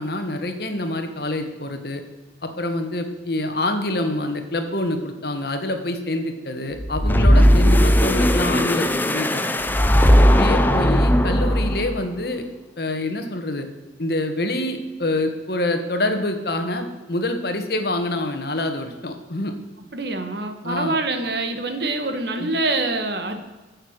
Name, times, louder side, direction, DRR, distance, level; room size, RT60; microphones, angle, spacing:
voice 1, 0.0-2.0 2.4-9.6 10.1-12.5 12.8-13.7 14.0-19.5 20.6-21.0 22.4-22.5, left 1 dB, 55° left, 6 dB, 1.5 m, -26 dB
sound 1, 6.8-12.0, equal, 10° left, 0.6 m, -17 dB
voice 2, 19.9-23.4, right 2 dB, 60° right, 7 dB, 1.5 m, -25 dB
15.0 x 6.6 x 6.6 m, 1.2 s
head